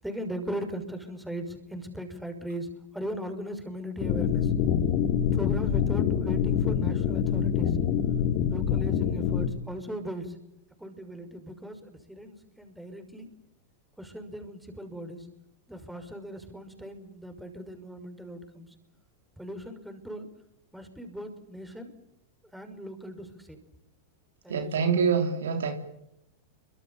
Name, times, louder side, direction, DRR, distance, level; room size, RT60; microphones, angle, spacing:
voice 1, 0.0-4.5 5.3-7.8 8.5-10.4 10.8-13.3 14.0-15.3 15.7-18.7 19.4-20.3 20.7-21.9 22.5-23.6 24.4-25.0, equal, 5° right, 6 dB, 5.8 m, -38 dB
sound 1, 4.0-9.5, left 8 dB, 45° left, 2.9 m, -25 dB
voice 2, 24.5-25.7, right 6 dB, 65° right, 6 dB, 3.3 m, -25 dB
29.5 x 24.5 x 7.3 m, 0.83 s
figure-of-eight pair, 90°, 0 cm